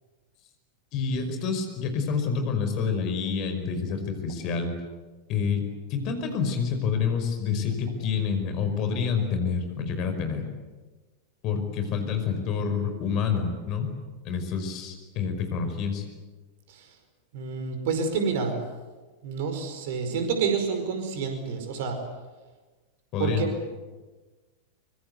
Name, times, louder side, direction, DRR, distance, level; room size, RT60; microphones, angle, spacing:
voice 1, 0.9-4.7 5.3-5.6 5.9-10.5 11.4-13.9 14.2-16.1 23.1-23.5, left 6 dB, 40° left, 6 dB, 5.3 m, -28 dB
voice 2, 17.3-18.6 19.2-22.0 23.2-23.5, right 5 dB, 50° right, 6 dB, 5.0 m, -28 dB
24.5 x 24.5 x 8.2 m, 1.3 s
figure-of-eight pair, 90°, 0 cm